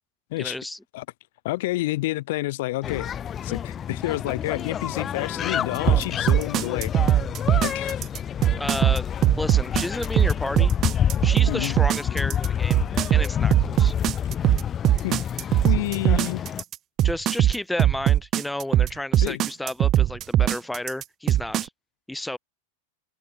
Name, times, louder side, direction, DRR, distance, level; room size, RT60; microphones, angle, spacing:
voice 1, 0.4-0.8 8.5-10.7 11.2-12.8 13.1-13.9 17.0-21.7 22.1-22.4, left 1 dB, 5° left, 1.6 m, -32 dB
voice 2, 1.4-3.1 3.4-6.9 7.6-8.0 11.5-11.8 15.0-15.2 15.6-16.4 19.2-19.4, left 18 dB, 50° left, 3.3 m, -29 dB
sound 1, 2.8-16.6, left 9 dB, 25° left, 1.5 m, -28 dB
sound 2, 5.9-21.6, right 12 dB, 30° right, 0.3 m, -20 dB
open air
figure-of-eight pair, 90°, 0 cm